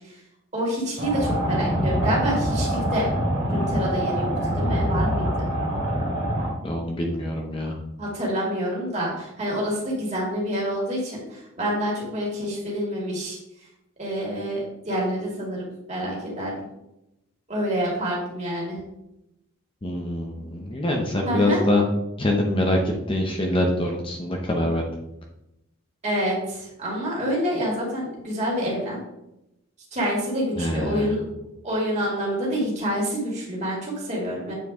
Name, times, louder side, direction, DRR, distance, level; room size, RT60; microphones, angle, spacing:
voice 1, 0.5-3.1 3.5-5.5 8.0-13.4 14.0-16.7 17.5-18.8 21.2-21.6 26.0-29.0 29.9-31.2 31.6-34.5, equal, 35° right, -3 dB, 2.4 m, -27 dB
sound 1, 1.0-6.5, equal, 70° right, 2.1 m, -24 dB
voice 2, 6.6-7.7 19.8-21.8 22.2-24.9 30.6-31.2, left 1 dB, 25° left, 1 dB, 0.7 m, -24 dB
8.4 x 4.6 x 3.6 m, 0.88 s
head